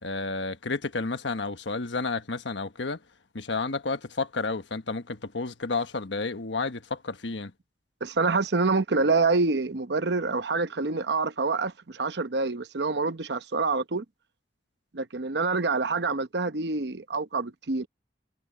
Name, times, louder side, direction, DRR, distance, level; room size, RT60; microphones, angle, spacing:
voice 1, 0.0-3.0 3.3-7.5, left 3 dB, 85° left, 1.3 m, -31 dB
voice 2, 8.0-14.0 14.9-17.9, right 3 dB, 70° right, 0.9 m, -26 dB
head